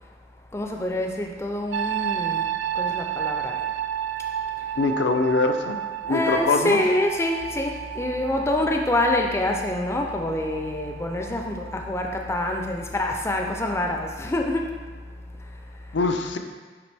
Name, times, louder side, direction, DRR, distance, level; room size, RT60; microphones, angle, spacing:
voice 1, 0.5-3.7 4.6-4.7 6.0-14.8 15.3-16.1, left 1 dB, 15° left, 2 dB, 0.4 m, -26 dB
sound 1, 1.7-13.4 13.7-14.2, right 10 dB, 85° right, 0.3 m, -32 dB
voice 2, 4.8-6.8 15.9-16.4, left 3 dB, 80° left, 4 dB, 0.5 m, -23 dB
9.3 x 3.3 x 3.4 m, 1.4 s
head